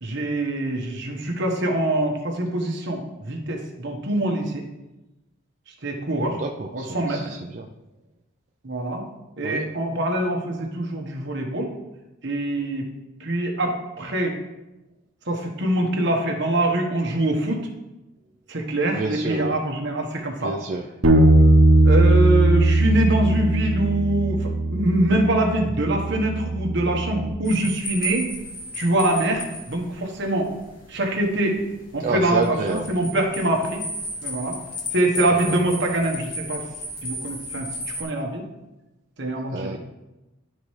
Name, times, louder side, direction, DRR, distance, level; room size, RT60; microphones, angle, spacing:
voice 1, 0.0-4.6 5.8-6.4 6.7-7.3 8.6-9.0 9.4-11.7 12.2-12.9 13.2-14.4 15.3-17.7 18.5-20.5 21.8-28.3 28.7-30.5 30.9-31.7 31.9-33.8 34.2-34.5 34.9-36.6 37.0-38.4 39.2-39.8, right 1 dB, 60° right, 2 dB, 1.2 m, -24 dB
voice 2, 6.3-7.7 9.4-9.6 19.0-19.6 20.4-20.9 32.0-32.9 35.5-35.6 39.5-39.8, right 3 dB, 40° right, 0 dB, 0.4 m, -29 dB
Bass guitar, 21.0-27.3, right 1 dB, 85° right, 0.9 m, -19 dB
sound 1, 27.5-38.0, equal, 45° left, 1.6 m, -34 dB
12.0 x 4.3 x 3.2 m, 0.99 s
head